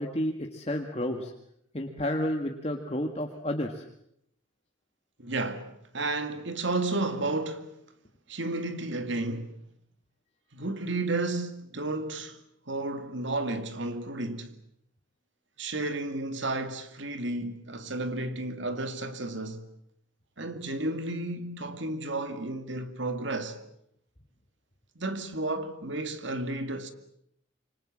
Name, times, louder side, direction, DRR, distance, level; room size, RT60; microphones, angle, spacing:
voice 1, 0.0-1.3 1.7-3.8, left 1 dB, 30° left, 1.7 m, -31 dB
voice 2, 5.2-5.7 5.9-7.7 8.3-9.5 10.5-12.4 12.7-14.5 15.6-19.7 20.4-23.6 25.0-26.9, right 2 dB, 65° right, 2.3 m, -32 dB
27.0 x 25.0 x 7.5 m
head